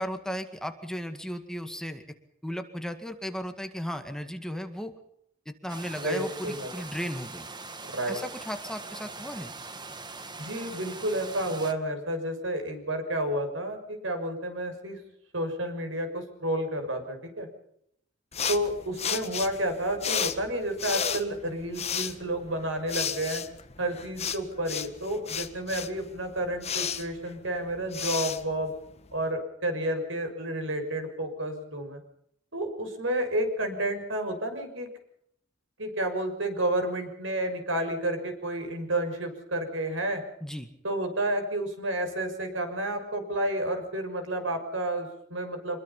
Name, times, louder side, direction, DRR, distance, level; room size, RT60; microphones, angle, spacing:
voice 1, 0.0-2.0 2.4-5.0 5.5-7.5 8.1-9.5 40.4-40.7, equal, 5° left, 6 dB, 2.0 m, -35 dB
sound 1, 5.7-11.7, right 3 dB, 25° right, 1.8 m, -42 dB
voice 2, 6.0-6.7 7.9-8.2 10.4-15.0 15.3-17.5 18.5-23.4 23.8-28.7 29.1-32.0 32.5-34.9 35.8-40.2 40.8-45.8, right 1 dB, 85° right, 6 dB, 6.5 m, -30 dB
sound 2, 18.3-29.3, left 7 dB, 35° left, 1.6 m, -34 dB
26.0 x 22.0 x 5.6 m, 0.72 s
head